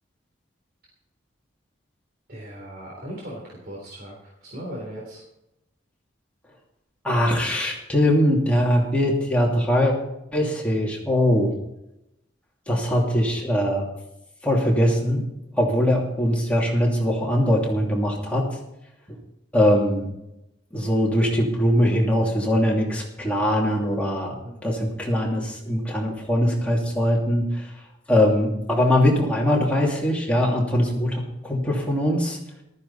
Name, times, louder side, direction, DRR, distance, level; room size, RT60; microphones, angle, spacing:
voice 1, 2.3-5.2 24.4-24.6, equal, 50° right, -3 dB, 3.6 m, -38 dB
voice 2, 7.0-9.9 10.3-11.5 12.7-13.8 14.4-15.2 15.6-18.5 19.1-19.2 19.5-20.1 20.7-24.4 24.6-27.7 28.1-32.4, equal, 5° left, -3 dB, 2.9 m, -21 dB
14.5 x 13.5 x 4.2 m, 0.86 s
head